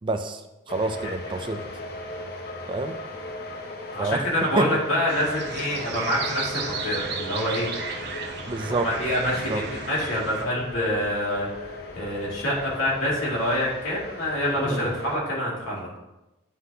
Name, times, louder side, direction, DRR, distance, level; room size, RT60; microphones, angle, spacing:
voice 1, 0.0-1.6 2.7-3.0 4.0-4.2 4.6-4.8 8.5-8.9 9.3-9.6 14.7-15.0, right 2 dB, 25° right, 7 dB, 0.3 m, -28 dB
sound 1, 0.7-15.2, left 2 dB, 50° left, 0.7 m, -38 dB
voice 2, 3.9-7.7 8.8-16.0, equal, 85° left, -5 dB, 2.3 m, -26 dB
sound 2, 5.1-10.4, right 4 dB, 55° right, 0.7 m, -34 dB
9.5 x 3.9 x 2.7 m, 0.98 s
head